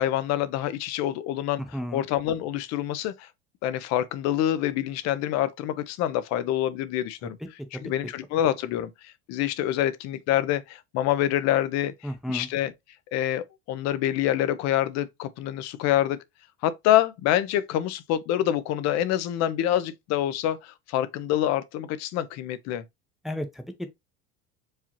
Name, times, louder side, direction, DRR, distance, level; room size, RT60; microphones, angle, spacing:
voice 1, 0.0-3.3 3.6-7.4 7.7-12.7 13.1-16.2 16.6-22.8, left 12 dB, 55° left, 0.6 m, -26 dB
voice 2, 12.0-12.5 23.2-23.9, equal, ahead, 0.5 m, -33 dB
4.8 x 2.8 x 2.9 m
supercardioid pair, 130°, 33 cm